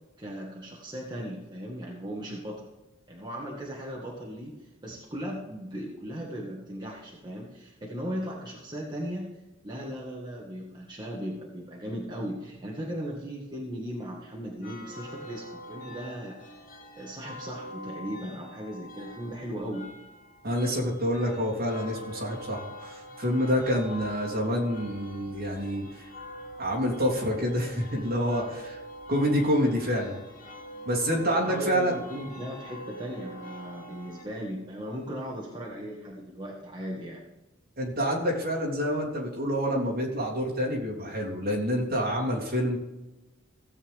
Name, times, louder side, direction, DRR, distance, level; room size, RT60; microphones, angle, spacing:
voice 1, 0.2-2.7 3.1-9.3 9.6-16.4 17.0-19.9 31.4-37.2, equal, 20° right, -4 dB, 1.6 m, -37 dB
church ringing, 14.6-34.2, left 1 dB, 45° left, 1.8 m, -45 dB
voice 2, 20.4-25.9 26.6-28.8 29.1-30.2 30.8-31.9 37.8-42.8, equal, 50° right, -2 dB, 3.1 m, -27 dB
16.5 x 8.3 x 3.6 m, 1.1 s
head